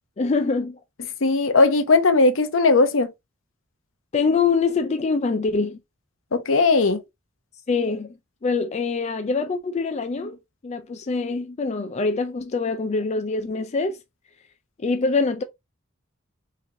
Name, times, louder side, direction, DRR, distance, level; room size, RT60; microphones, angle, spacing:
voice 1, 0.2-0.8 4.1-5.8 7.7-10.4 10.6-14.0 14.8-15.4, left 4 dB, 35° left, 0.4 m, -24 dB
voice 2, 1.2-3.1 6.3-7.0, left 3 dB, 70° left, 0.7 m, -18 dB
4.8 x 3.0 x 2.6 m
head